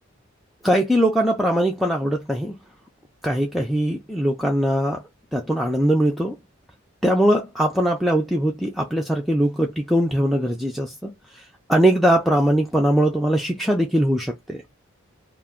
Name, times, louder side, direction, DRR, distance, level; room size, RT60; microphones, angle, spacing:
voice 1, 0.6-2.6 3.2-5.0 5.3-6.3 7.0-11.4 11.7-14.6, right 1 dB, ahead, 0.3 m, -21 dB
2.5 x 2.2 x 3.5 m
head